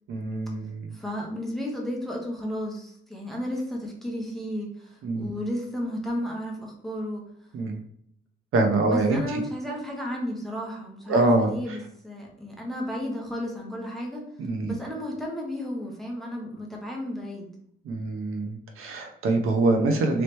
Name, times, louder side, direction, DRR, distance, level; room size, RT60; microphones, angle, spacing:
voice 1, 0.1-0.9 5.0-5.3 7.5-7.8 8.5-9.2 11.1-11.5 14.4-14.7 17.8-20.2, right 2 dB, 90° right, 4 dB, 0.6 m, -24 dB
voice 2, 0.9-7.2 8.8-14.2 14.7-17.5, equal, ahead, -2 dB, 0.7 m, -33 dB
3.1 x 3.0 x 3.0 m, 0.68 s
wide cardioid pair, 155°, 21 cm